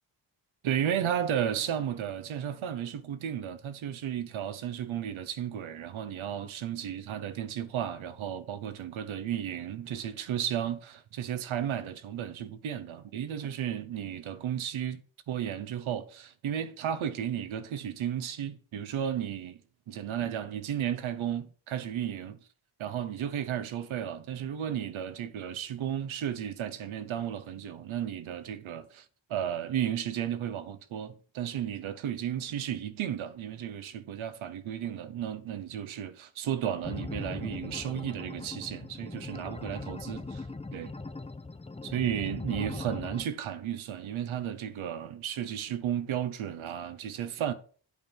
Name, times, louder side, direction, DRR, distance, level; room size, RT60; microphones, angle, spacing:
voice 1, 0.6-15.0 15.3-19.6 19.9-22.4 22.8-29.0 29.3-40.5 40.7-40.9 41.8-47.5, right 9 dB, 85° right, 1.0 m, -34 dB
sound 1, 36.8-43.2, left 3 dB, 15° left, 0.6 m, -40 dB
8.4 x 4.6 x 6.9 m
cardioid pair, 60°, 47 cm